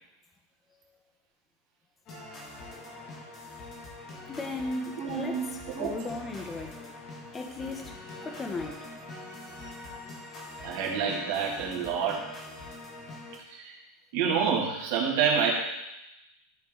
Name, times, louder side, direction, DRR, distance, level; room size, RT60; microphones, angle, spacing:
sound 1, 2.1-13.4, left 2 dB, 30° left, 1.6 m, -44 dB
voice 1, 4.3-6.8 7.3-8.0 8.2-8.8, left 2 dB, 10° left, 4 dB, 0.8 m, -36 dB
voice 2, 5.0-5.9 10.6-12.2 13.5-13.7 14.1-15.5, right 7 dB, 55° right, -2 dB, 2.2 m, -28 dB
13.0 x 4.4 x 3.8 m, 0.91 s
supercardioid pair, 175°, 0 cm